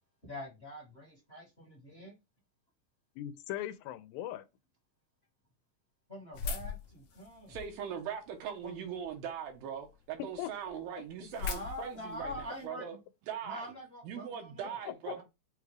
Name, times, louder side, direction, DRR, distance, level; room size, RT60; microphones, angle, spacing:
voice 1, 0.2-2.1 6.1-7.6 8.6-8.8 11.3-13.0 13.4-14.8 15.1-15.2, left 1 dB, 35° left, 0.9 m, -45 dB
voice 2, 3.2-4.4 10.2-10.8 14.9-15.2, left 13 dB, 85° left, 2.4 m, -40 dB
sound 1, 6.3-7.9 8.4-9.1 9.6-9.7 9.9-10.0 10.3-10.4 10.6-12.6, left 5 dB, 70° left, 1.5 m, -40 dB
voice 3, 7.5-13.0 13.3-13.7 14.0-15.2, right 8 dB, 85° right, 2.7 m, -40 dB
6.8 x 2.4 x 3.3 m
omnidirectional pair, 4.1 m